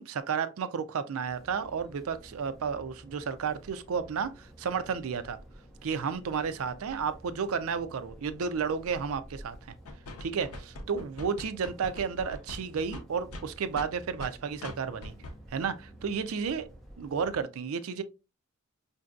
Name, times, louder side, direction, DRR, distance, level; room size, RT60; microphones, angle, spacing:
voice 1, 0.0-5.4 5.8-9.7 10.2-15.1 15.5-16.7 17.0-18.0, right 6 dB, 65° right, 0.4 m, -32 dB
sound 1, 1.2-17.4, right 1 dB, ahead, 0.8 m, -52 dB
sound 2, 9.9-14.3 14.6-14.8 15.0-15.3 15.6-15.7, left 1 dB, 75° left, 0.7 m, -42 dB
5.0 x 2.6 x 2.3 m
head